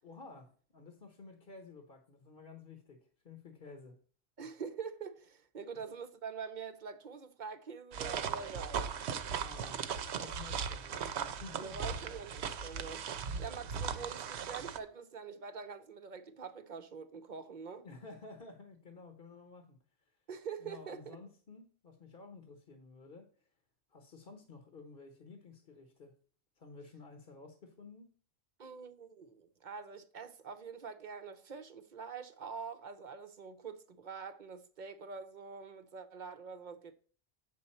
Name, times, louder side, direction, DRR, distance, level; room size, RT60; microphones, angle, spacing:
voice 1, 0.0-3.0 3.2-4.0 9.4-9.8 10.2-11.8 17.8-19.8 20.0-20.2 20.6-23.5 23.9-26.1 26.6-28.1, left 3 dB, 55° left, 1.1 m, -52 dB
voice 2, 4.4-8.9 11.6-17.9 20.3-21.2 28.6-36.9, right 6 dB, 50° right, 0.8 m, -45 dB
sound 1, 7.9-14.8, right 7 dB, 75° right, 0.9 m, -38 dB
8.0 x 6.4 x 4.3 m
omnidirectional pair, 1.2 m